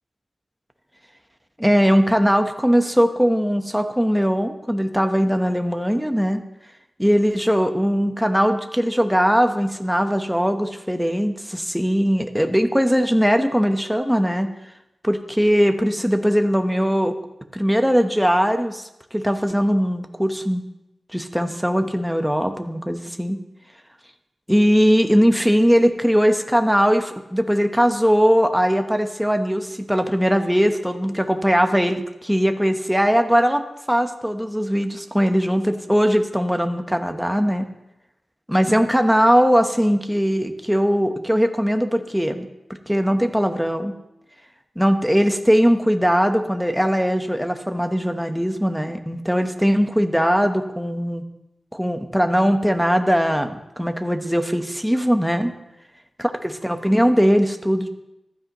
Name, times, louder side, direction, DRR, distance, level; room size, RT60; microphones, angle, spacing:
voice 1, 1.6-6.4 7.0-14.5 15.0-17.2 17.5-20.6 21.1-23.4 24.5-33.6 33.9-37.7 38.5-42.5 42.9-43.9 44.8-51.2 51.7-55.5 56.4-57.9, equal, ahead, 6 dB, 1.0 m, -20 dB
14.5 x 12.5 x 3.0 m, 0.89 s
wide cardioid pair, 100°, 0 cm